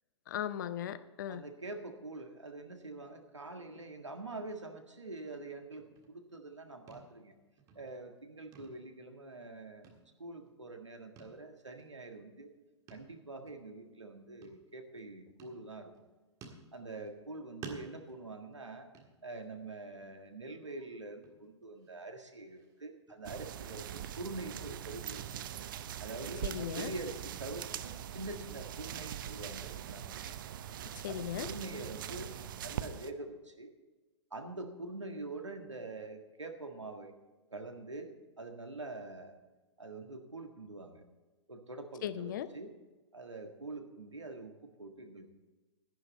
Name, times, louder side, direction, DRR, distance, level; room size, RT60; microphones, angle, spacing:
voice 1, 0.3-1.4 26.4-26.9 31.0-31.5 42.0-42.5, left 10 dB, 40° left, 14 dB, 0.6 m, -37 dB
voice 2, 1.3-7.3 7.7-9.9 10.2-12.5 12.9-15.9 16.7-18.9 19.2-23.9 24.2-25.2 26.0-30.3 31.1-33.7 34.3-37.1 37.5-38.1 38.4-39.4 39.8-41.0 41.5-42.7 43.1-45.3, right 2 dB, 75° right, 5 dB, 1.7 m, -45 dB
sound 1, 5.8-6.6 6.9-7.3 7.6-8.2 8.5-9.5 9.8-10.5 11.2-11.4 11.8-11.9 12.9-13.2 13.5-13.6 14.4-15.0 15.4-16.0 16.4-17.3 17.6-19.6 20.0-20.3 20.6-20.7 21.2-21.9 22.3-24.8, right 5 dB, 25° right, 1.6 m, -54 dB
sound 2, 23.2-33.1, right 10 dB, 45° right, 0.6 m, -42 dB
11.5 x 11.0 x 4.2 m, 1.2 s
figure-of-eight pair, 115°, 15 cm